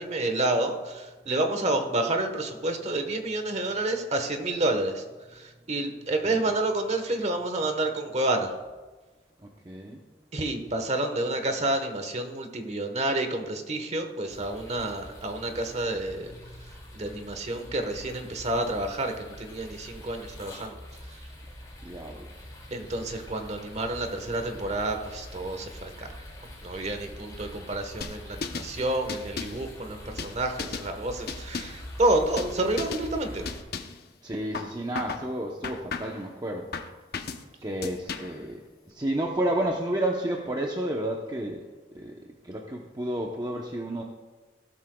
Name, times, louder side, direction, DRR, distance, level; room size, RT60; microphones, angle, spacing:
voice 1, 0.0-5.0 5.3-8.5 10.3-16.3 16.9-20.8 22.7-26.1 26.6-33.4, right 2 dB, 40° right, 6 dB, 1.2 m, -29 dB
voice 2, 9.4-10.0 21.8-22.2 34.2-36.7 37.6-38.6 38.9-41.6 41.9-42.1 42.4-44.0, right 1 dB, 25° right, 0 dB, 0.8 m, -31 dB
sound 1, 14.3-33.6, left 1 dB, 20° left, 3.2 m, -44 dB
sound 2, 28.0-28.7 29.1-29.6 30.2-30.9 31.3-31.9 32.4-32.5 32.8-33.1 33.5-34.0 34.5-35.3 35.6-36.2 36.7-37.4 37.8-38.4, left 5 dB, 60° left, 0.8 m, -35 dB
16.0 x 12.5 x 2.3 m, 1.3 s
head